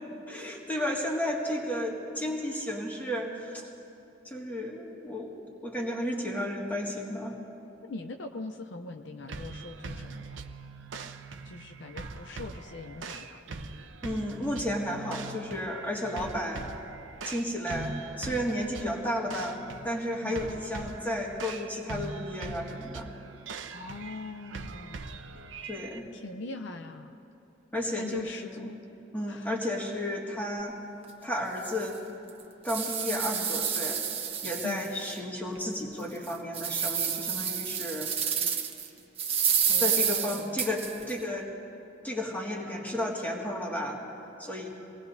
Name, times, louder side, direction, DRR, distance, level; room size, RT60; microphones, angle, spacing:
voice 1, 0.3-3.7 4.2-7.4 14.0-16.6 17.2-19.6 19.8-23.1 25.7-26.1 27.7-28.7 29.1-30.8 31.2-32.0 32.6-34.0 34.4-38.1 38.5-38.6 39.8-41.5 42.0-44.0 44.4-44.7, left 1 dB, 10° left, -3 dB, 1.9 m, -33 dB
voice 2, 7.8-10.4 11.4-13.4 20.2-20.4 23.7-25.0 26.1-27.1 27.9-28.8 29.3-29.5 34.6-34.9 39.7-40.6, left 3 dB, 65° left, 6 dB, 0.6 m, -41 dB
sound 1, 9.3-26.0, right 3 dB, 75° right, 0.6 m, -42 dB
sound 2, 31.0-31.1 31.7-31.8 32.3-35.1 35.6-35.7 36.2-38.9 39.2-41.1, right 7 dB, 30° right, 1.1 m, -29 dB
25.5 x 18.5 x 2.6 m, 2.9 s
head